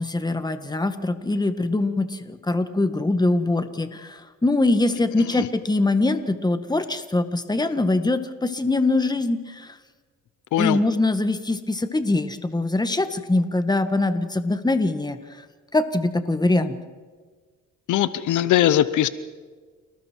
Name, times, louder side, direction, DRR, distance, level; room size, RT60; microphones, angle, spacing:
voice 1, 0.0-9.7 10.6-15.2 15.7-16.8, left 2 dB, 15° left, 9 dB, 1.7 m, -23 dB
voice 2, 17.9-19.1, left 12 dB, 80° left, 15 dB, 0.9 m, -20 dB
29.5 x 19.0 x 4.6 m, 1.5 s
cardioid pair, 90°, 30 cm